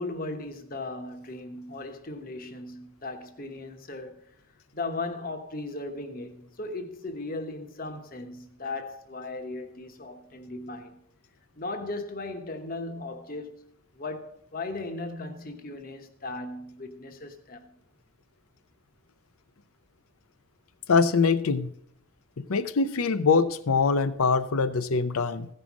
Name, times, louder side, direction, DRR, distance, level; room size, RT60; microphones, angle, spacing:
voice 1, 0.0-4.2 4.7-11.0 11.5-13.5 13.9-17.7, left 2 dB, 40° left, 1.0 m, -37 dB
voice 2, 20.9-21.7 22.4-25.5, left 4 dB, 90° left, 0.6 m, -23 dB
15.5 x 5.6 x 6.0 m
head